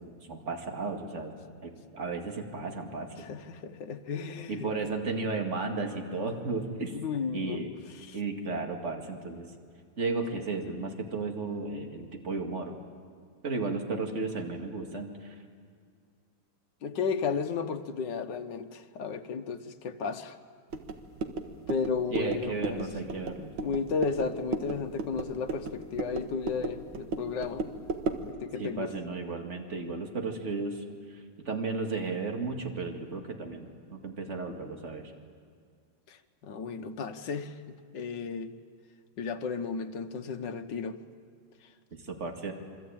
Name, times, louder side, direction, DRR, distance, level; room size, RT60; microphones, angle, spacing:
voice 1, 0.0-1.4 1.6-3.3 4.5-7.0 7.3-7.7 8.1-9.5 10.0-12.8 13.4-15.4 22.1-23.5 28.6-35.1 42.0-42.5, right 3 dB, 35° right, 3 dB, 2.4 m, -34 dB
voice 2, 3.2-4.7 6.9-7.6 8.0-8.2 16.8-20.4 21.7-22.8 23.6-27.7 28.3-28.9 36.1-36.2 36.4-37.6 37.9-38.5 39.2-41.0, left 5 dB, 65° left, 6 dB, 1.8 m, -33 dB
sound 1, 20.7-28.3, right 3 dB, 75° right, 2.3 m, -36 dB
26.5 x 24.0 x 8.8 m, 2.1 s
omnidirectional pair, 2.2 m